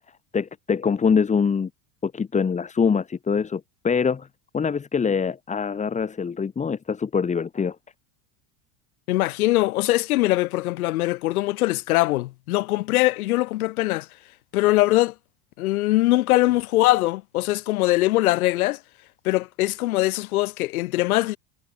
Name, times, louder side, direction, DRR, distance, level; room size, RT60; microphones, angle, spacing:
voice 1, 0.3-1.7 2.0-4.3 4.5-7.8, left 6 dB, 15° left, 2.4 m, -24 dB
voice 2, 9.1-14.1 14.5-15.1 15.6-18.8 19.2-21.4, left 18 dB, 85° left, 5.0 m, -22 dB
supercardioid pair, 140°, 42 cm